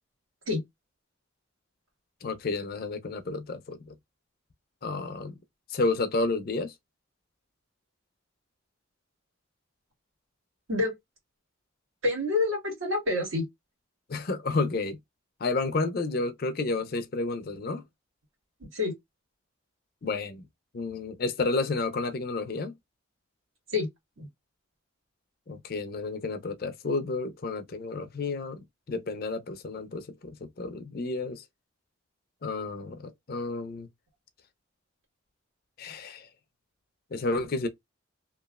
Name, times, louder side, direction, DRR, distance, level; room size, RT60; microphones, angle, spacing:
voice 1, 2.2-3.9 4.8-5.4 5.7-6.7 14.1-15.0 15.4-17.8 20.0-20.5 20.7-22.7 25.5-31.4 32.4-33.9 35.8-36.3 37.1-37.7, left 3 dB, 45° left, 0.5 m, -31 dB
voice 2, 12.0-13.4 18.7-18.9 23.7-23.9 24.2-24.3, left 3 dB, 80° right, 1.8 m, -27 dB
3.0 x 2.4 x 2.3 m
head